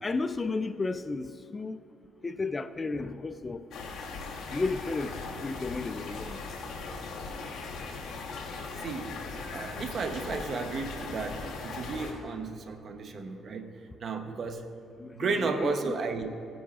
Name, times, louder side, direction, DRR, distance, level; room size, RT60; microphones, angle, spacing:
voice 1, 0.0-1.8 2.2-3.6 4.5-6.4 15.0-15.9, left 3 dB, 25° left, 11 dB, 0.4 m, -33 dB
sound 1, 3.7-12.1, left 4 dB, 65° left, 1.8 m, -39 dB
voice 2, 8.8-9.2 9.5-13.7 14.0-14.7 15.1-16.3, right 4 dB, 50° right, 7 dB, 0.8 m, -33 dB
16.5 x 10.0 x 2.4 m, 2.6 s
cardioid pair, 95°, 0 cm